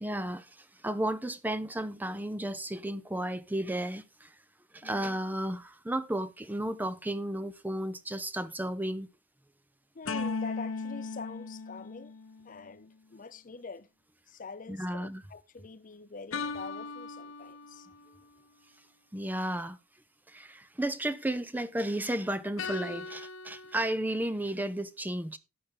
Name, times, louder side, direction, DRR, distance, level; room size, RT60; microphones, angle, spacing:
voice 1, 0.0-4.3 4.7-9.1 14.7-15.2 19.1-19.8 20.3-25.4, right 1 dB, 10° right, 0.5 m, -33 dB
voice 2, 4.8-5.2 9.9-12.1 12.4-13.9 14.3-17.9, left 4 dB, 40° left, 0.6 m, -45 dB
sound 1, 10.1-12.6 16.3-18.1 22.6-24.0, left 4 dB, 80° left, 0.9 m, -38 dB
12.0 x 8.4 x 3.7 m
head